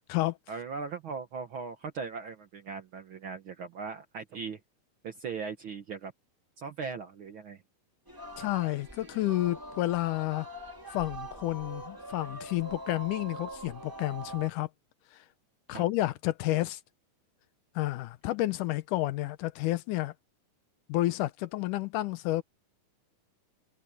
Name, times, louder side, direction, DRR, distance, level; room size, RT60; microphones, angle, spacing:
voice 1, 0.5-4.6 5.0-6.1 6.6-7.6 15.7-15.8, right 5 dB, 60° right, 1.4 m, -39 dB
Singing, 8.1-14.5, right 1 dB, 5° right, 2.0 m, -43 dB
voice 2, 8.4-10.5 10.9-14.7 15.1-15.2 15.7-16.8 17.8-20.1 20.9-22.4, left 17 dB, 80° left, 2.3 m, -30 dB
omnidirectional pair, 3.6 m